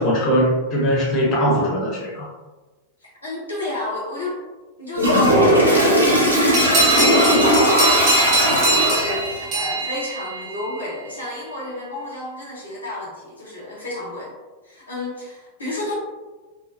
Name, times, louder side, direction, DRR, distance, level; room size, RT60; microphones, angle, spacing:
voice 1, 0.0-2.3, equal, 35° left, -5 dB, 0.8 m, -20 dB
voice 2, 3.0-4.4 4.8-14.3 14.6-15.9, left 1 dB, 80° left, -7 dB, 0.8 m, -32 dB
Toilet flush, 5.0-9.3, equal, 85° right, 0.5 m, -17 dB
sound 1, 6.5-10.8, right 2 dB, 40° right, 0.7 m, -22 dB
2.4 x 2.1 x 2.4 m, 1.2 s
figure-of-eight pair, 90°, 0 cm